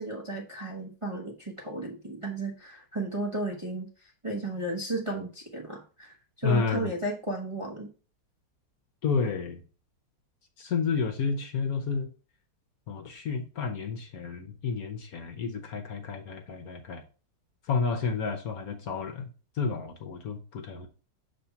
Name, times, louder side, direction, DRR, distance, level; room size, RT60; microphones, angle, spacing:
voice 1, 0.0-7.9, right 2 dB, 25° right, 0.8 m, -34 dB
voice 2, 6.4-6.9 9.0-9.6 10.6-12.1 12.9-17.0 17.7-19.3 19.6-20.9, left 5 dB, 60° left, 1.2 m, -30 dB
6.8 x 3.4 x 5.7 m
omnidirectional pair, 2.0 m